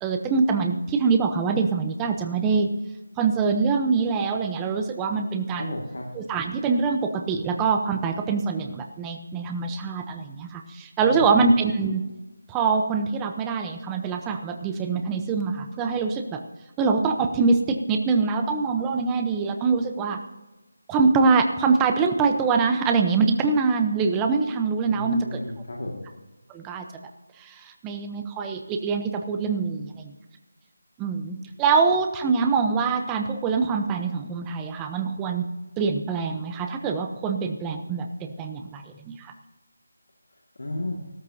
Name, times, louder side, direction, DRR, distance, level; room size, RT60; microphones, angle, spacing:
voice 1, 0.0-2.7 3.2-5.7 6.1-12.1 12.5-16.4 16.8-20.2 20.9-25.4 26.5-27.1 27.4-27.5 27.8-30.1 31.0-35.5 35.8-39.3, right 4 dB, 10° right, 6 dB, 0.8 m, -24 dB
voice 2, 5.5-6.1 11.0-11.3 24.9-26.0 40.6-41.0, left 1 dB, 70° left, -1 dB, 2.1 m, -33 dB
14.5 x 13.5 x 2.8 m, 1.1 s
figure-of-eight pair, 165°, 0 cm